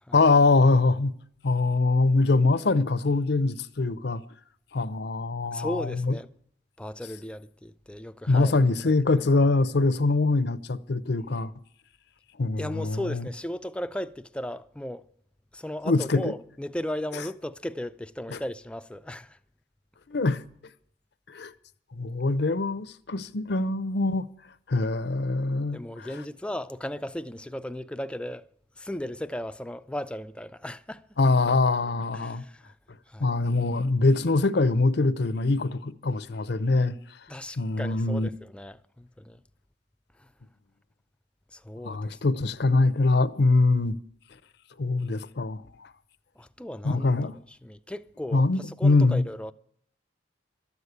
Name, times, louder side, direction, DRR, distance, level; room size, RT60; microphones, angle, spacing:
voice 1, 0.1-1.1 1.4-4.2 4.7-6.1 8.3-11.5 12.4-13.3 15.9-16.3 17.1-17.2 18.3-18.4 20.1-20.4 21.3-21.5 21.9-24.3 24.7-26.1 31.2-32.4 33.2-37.0 37.6-38.3 41.8-44.0 44.8-45.9 46.8-47.3 48.3-49.2, left 3 dB, 65° left, 0.7 m, -23 dB
voice 2, 5.5-6.3 6.8-8.5 8.8-8.9 12.6-15.1 15.5-19.4 25.7-28.5 28.8-31.1 32.1-32.7 33.1-33.3 37.3-39.4 40.2-40.3 41.5-42.0 46.4-49.5, left 1 dB, 5° left, 0.4 m, -36 dB
13.0 x 8.1 x 8.3 m
head